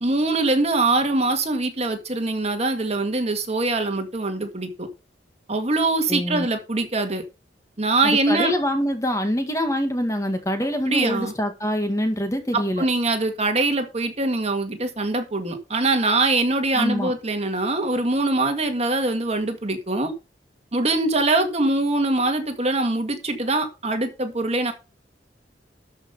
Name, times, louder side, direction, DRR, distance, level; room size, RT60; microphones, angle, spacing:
voice 1, 0.0-4.9 5.5-7.2 7.8-8.5 10.9-11.3 12.5-20.1 20.7-24.7, right 2 dB, 35° right, 6 dB, 1.9 m, -23 dB
voice 2, 6.1-6.5 8.0-12.9 16.8-17.1, equal, 20° left, 6 dB, 1.9 m, -25 dB
13.0 x 5.3 x 5.6 m, 0.30 s
head